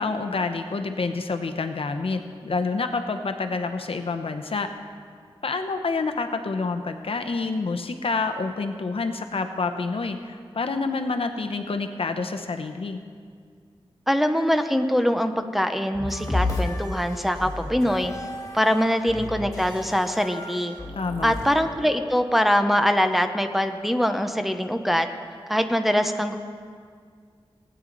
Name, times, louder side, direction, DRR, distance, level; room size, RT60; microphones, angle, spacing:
voice 1, 0.0-4.7 5.4-13.0 21.0-21.3, left 4 dB, 75° left, 7 dB, 0.8 m, -28 dB
voice 2, 14.1-18.1 18.5-20.7 21.2-25.1 25.5-26.3, equal, ahead, 6 dB, 0.7 m, -23 dB
sound 1, 15.9-21.5, left 2 dB, 35° left, 2.0 m, -32 dB
19.0 x 9.0 x 4.0 m, 2.1 s
wide cardioid pair, 85°, 10 cm